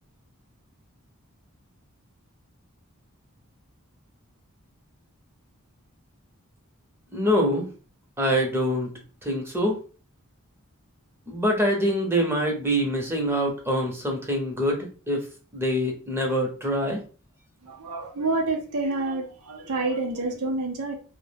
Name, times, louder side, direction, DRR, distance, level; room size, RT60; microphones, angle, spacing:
voice 1, 7.1-7.7 8.2-8.9 9.2-9.8 11.3-15.3 15.5-17.0, equal, 10° right, 0 dB, 0.5 m, -25 dB
voice 2, 17.6-20.9, right 3 dB, 85° right, 3 dB, 0.5 m, -28 dB
2.3 x 2.0 x 3.2 m, 0.37 s
head